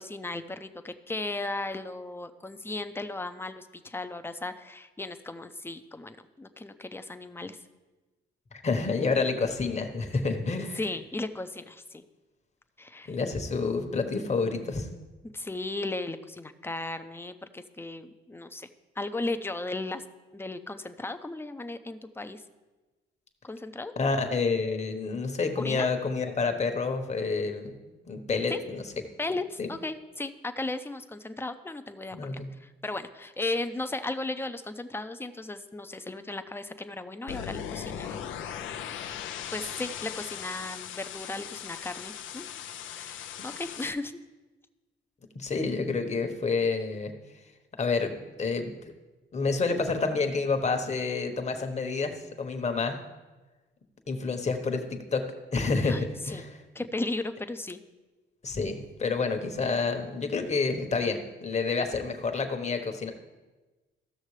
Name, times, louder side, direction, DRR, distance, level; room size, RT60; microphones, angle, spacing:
voice 1, 0.0-7.6 10.7-12.1 12.8-13.2 15.3-18.7 19.0-20.0 20.3-22.4 23.4-23.9 25.6-25.9 28.5-28.6 29.2-38.2 39.5-42.5 42.9-44.2 55.8-56.5 56.7-57.8, left 2 dB, 10° left, 9 dB, 0.6 m, -36 dB
voice 2, 8.6-10.8 13.1-14.9 24.0-27.7 28.1-28.8 29.6-29.7 32.1-32.5 45.3-47.1 47.8-48.7 49.3-53.0 54.1-54.8 55.1-56.6 58.4-63.1, left 4 dB, 35° left, 6 dB, 1.1 m, -29 dB
sound 1, 37.3-43.9, left 9 dB, 80° left, 0.6 m, -39 dB
15.0 x 6.4 x 3.2 m, 1.2 s
cardioid pair, 90°, 20 cm